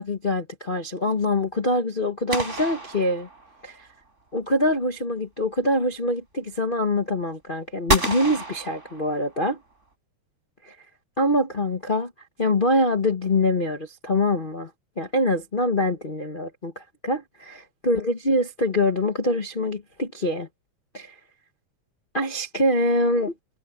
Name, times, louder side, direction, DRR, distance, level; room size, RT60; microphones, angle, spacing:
voice 1, 0.0-3.3 3.6-3.9 4.3-9.6 11.2-12.1 12.4-14.7 15.0-20.5 20.9-21.2 22.1-23.3, left 1 dB, 60° left, 0.5 m, -24 dB
sound 1, 2.3-3.8 7.9-9.5, right 2 dB, 25° right, 5.4 m, -29 dB
omnidirectional pair, 3.3 m